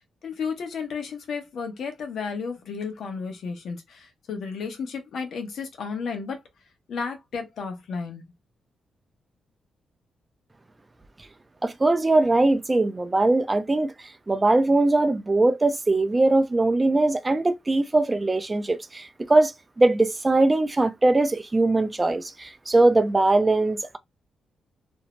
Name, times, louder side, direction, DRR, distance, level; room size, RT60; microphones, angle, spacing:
voice 1, 0.2-6.4 6.9-8.2, left 5 dB, 75° left, 0.8 m, -33 dB
voice 2, 11.6-13.9 14.3-19.5 19.8-24.0, right 2 dB, 20° right, 0.3 m, -21 dB
2.6 x 2.0 x 3.0 m
cardioid pair, 95°, 0 cm